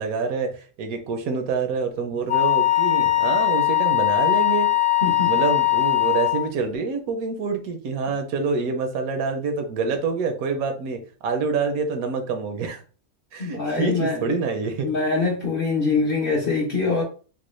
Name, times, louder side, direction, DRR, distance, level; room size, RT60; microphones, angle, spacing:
voice 1, 0.0-4.7 5.3-12.8 13.3-14.9, right 4 dB, 75° right, 6 dB, 1.1 m, -26 dB
Wind instrument woodwind instrument, 2.3-6.5, left 16 dB, 10° left, 0.4 m, -20 dB
voice 2, 5.0-5.3 13.4-14.2 14.8-17.0, left 4 dB, 50° left, -2 dB, 0.7 m, -23 dB
3.7 x 2.1 x 3.1 m, 0.38 s
omnidirectional pair, 1.6 m